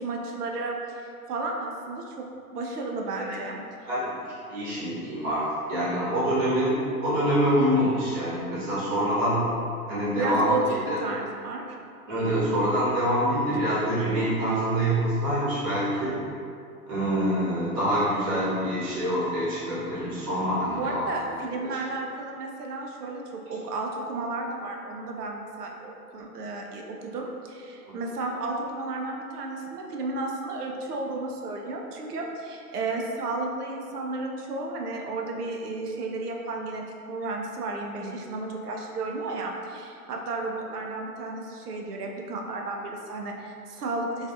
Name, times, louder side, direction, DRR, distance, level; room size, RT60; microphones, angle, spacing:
voice 1, 0.0-2.3 2.5-3.6 10.1-11.8 20.6-44.3, right 2 dB, 80° right, 1 dB, 0.6 m, -33 dB
voice 2, 3.9-9.4 9.9-10.5 10.8-11.0 12.1-16.1 16.9-21.1 27.9-28.0 37.9-38.1, equal, 30° right, -9 dB, 1.0 m, -26 dB
2.4 x 2.3 x 2.6 m, 2.4 s
hypercardioid pair, 120°, 46 cm